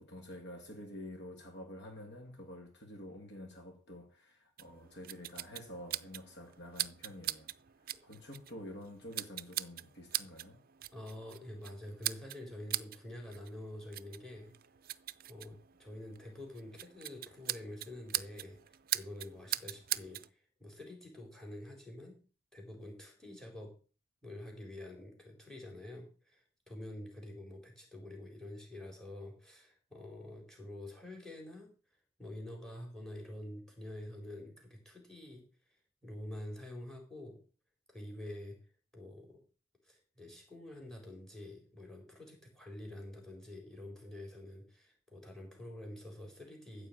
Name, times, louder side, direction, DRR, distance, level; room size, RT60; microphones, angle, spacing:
voice 1, 0.0-7.5 7.8-10.6, left 1 dB, 50° left, 2.3 m, -48 dB
sound 1, 4.6-20.3, right 14 dB, 40° right, 0.5 m, -42 dB
voice 2, 10.9-14.6 15.3-22.2 22.5-23.7 24.2-31.7 32.2-35.4 35.7-37.4 37.9-38.6 38.9-39.4 39.8-46.9, left 1 dB, ahead, 4.2 m, -47 dB
14.5 x 4.8 x 8.7 m
head